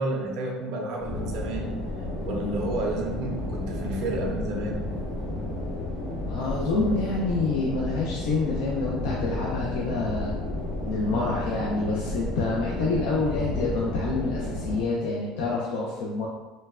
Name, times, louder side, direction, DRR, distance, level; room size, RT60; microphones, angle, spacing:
voice 1, 0.0-1.8 2.2-4.9, right 2 dB, 55° right, 0 dB, 0.4 m, -30 dB
sound 1, 1.0-14.8, left 1 dB, 55° left, 0.8 m, -32 dB
voice 2, 6.3-10.3 10.8-16.3, left 3 dB, 75° left, -4 dB, 0.4 m, -27 dB
3.1 x 2.1 x 2.3 m, 1.2 s
cardioid pair, 150°, 0 cm